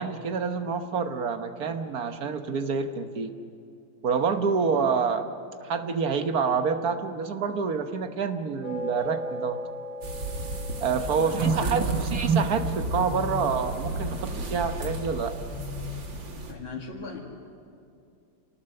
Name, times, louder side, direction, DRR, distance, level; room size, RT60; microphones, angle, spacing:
voice 1, 0.0-3.3 4.0-5.3 5.6-9.6 10.8-15.3, right 5 dB, 55° right, 8 dB, 1.4 m, -27 dB
sound 1, 8.6-14.1, equal, 90° right, 8.8 m, -38 dB
sound 2, 10.0-16.5, right 1 dB, 70° right, 2.8 m, -33 dB
voice 2, 11.1-12.1 16.5-17.2, left 5 dB, 85° left, -3 dB, 2.9 m, -38 dB
29.0 x 19.0 x 6.7 m, 2.5 s
omnidirectional pair, 2.1 m